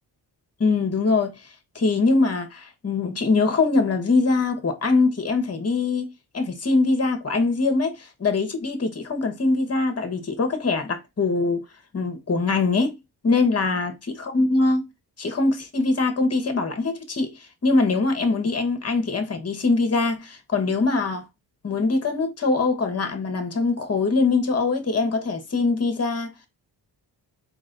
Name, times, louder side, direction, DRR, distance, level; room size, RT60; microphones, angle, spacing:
voice 1, 0.6-1.3 1.7-11.6 11.9-13.0 13.2-14.9 15.2-17.3 17.6-21.2 21.6-26.3, left 3 dB, 35° left, 1.2 m, -23 dB
4.0 x 3.1 x 3.9 m
cardioid pair, 70°, 44 cm